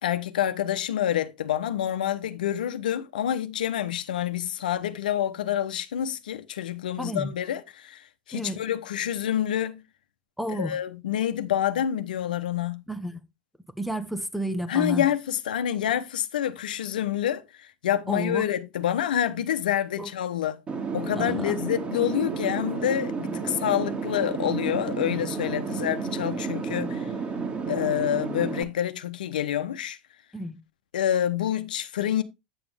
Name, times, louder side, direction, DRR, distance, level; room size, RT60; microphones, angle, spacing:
voice 1, 0.0-9.8 10.5-12.8 14.7-20.6 20.9-27.1 27.7-30.0 30.9-32.2, left 10 dB, 80° left, 0.9 m, -27 dB
voice 2, 7.0-7.3 8.3-8.6 10.4-10.8 12.9-13.2 13.8-15.1 18.1-18.5 20.0-20.1 21.2-21.5 23.3-23.4 25.7-25.8 30.3-30.6, equal, ahead, 0.9 m, -31 dB
sound 1, 20.7-28.6, right 5 dB, 30° right, 2.2 m, -31 dB
8.8 x 7.0 x 3.4 m
hypercardioid pair, 95°, 5 cm